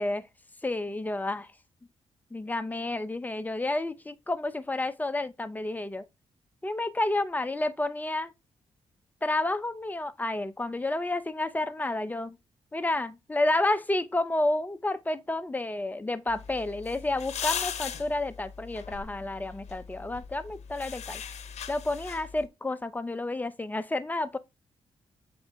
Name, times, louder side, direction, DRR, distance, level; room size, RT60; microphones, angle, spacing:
voice 1, 0.6-1.5 2.3-6.0 6.6-8.3 9.2-12.4 12.7-21.2 21.7-24.4, left 2 dB, 15° left, 0.7 m, -30 dB
sound 1, 16.3-22.5, left 8 dB, 70° left, 0.9 m, -39 dB
7.0 x 4.2 x 3.5 m
cardioid pair, 70°, 12 cm